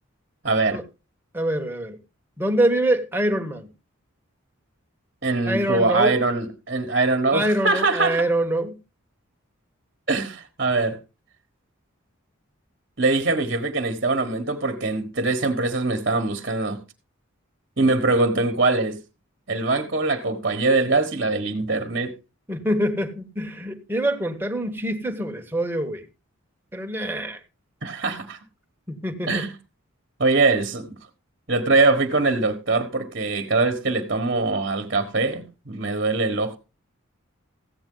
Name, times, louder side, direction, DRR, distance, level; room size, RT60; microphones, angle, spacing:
voice 1, 0.4-0.8 5.2-8.3 10.1-11.0 13.0-16.8 17.8-19.0 19.5-22.1 27.8-28.4 29.3-29.5 30.2-31.0 31.5-36.6, right 3 dB, 45° right, 1.4 m, -22 dB
voice 2, 1.3-2.0 2.4-3.7 5.5-6.2 7.3-8.8 22.5-26.0 26.7-27.4 28.9-29.5, right 1 dB, 10° right, 1.3 m, -25 dB
15.0 x 8.8 x 3.9 m
head